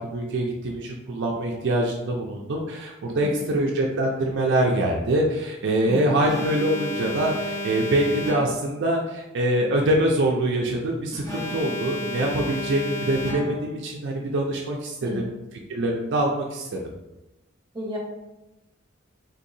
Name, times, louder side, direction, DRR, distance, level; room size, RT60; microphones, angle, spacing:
voice 1, 0.0-15.3 15.7-16.8, right 1 dB, 60° right, 0 dB, 0.4 m, -24 dB
voice 2, 3.1-3.6 5.9-6.2 11.1-11.2 15.0-15.3 17.7-18.0, left 1 dB, 20° right, -3 dB, 0.9 m, -34 dB
Alarm, 6.2-8.8 11.2-13.8, left 1 dB, 15° left, 0.9 m, -32 dB
3.9 x 2.7 x 2.6 m, 0.97 s
head